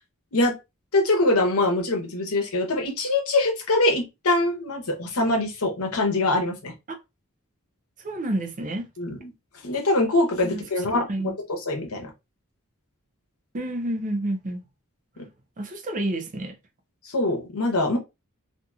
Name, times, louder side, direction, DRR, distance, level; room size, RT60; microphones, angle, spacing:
voice 1, 0.9-6.7 9.0-9.3 9.6-11.3 11.7-12.1 17.0-18.0, left 2 dB, 75° left, 0.9 m, -23 dB
voice 2, 8.0-8.9 10.4-10.6 10.9-11.3 13.5-14.6 15.6-16.5, right 1 dB, 35° right, 0.5 m, -29 dB
2.8 x 2.6 x 2.3 m
head